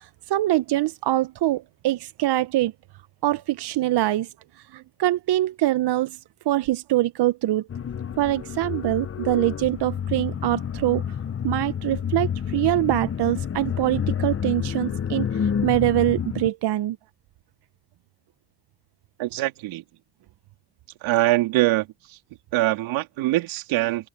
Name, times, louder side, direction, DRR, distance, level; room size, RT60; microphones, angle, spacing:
voice 1, 0.0-2.7 3.2-6.2 6.5-7.7 8.2-11.0 11.4-17.0, right 15 dB, 55° right, 0.9 m, -24 dB
sound 1, 7.7-16.5, left 8 dB, 30° left, 0.9 m, -29 dB
voice 2, 19.2-19.8 21.0-22.2 22.5-24.1, right 17 dB, 80° right, 3.3 m, -23 dB
supercardioid pair, 70°, 47 cm